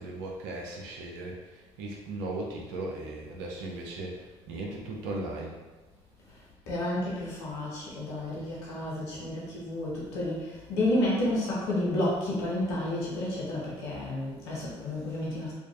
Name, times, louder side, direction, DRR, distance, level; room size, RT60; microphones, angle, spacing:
voice 1, 0.0-1.4 1.8-5.6, right 2 dB, 80° right, -1 dB, 0.7 m, -37 dB
voice 2, 6.7-15.5, left 1 dB, 85° left, -6 dB, 1.0 m, -31 dB
4.9 x 2.4 x 2.5 m, 1.2 s
hypercardioid pair, 55°, 14 cm